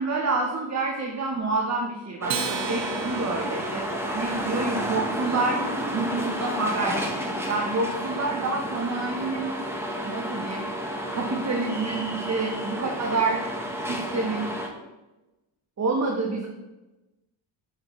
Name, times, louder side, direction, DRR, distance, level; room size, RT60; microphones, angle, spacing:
voice 1, 0.0-3.9 4.1-5.6 5.9-7.2 7.4-9.5 10.0-10.6 11.1-13.4 13.9-14.5 15.8-16.5, right 3 dB, 35° right, 0 dB, 0.8 m, -28 dB
sound 1, 2.2-14.7, equal, 5° right, 0.9 m, -31 dB
Acoustic guitar, 2.3-4.9, right 7 dB, 65° right, 0.7 m, -35 dB
6.5 x 5.4 x 3.0 m, 1.0 s
cardioid pair, 105°, 48 cm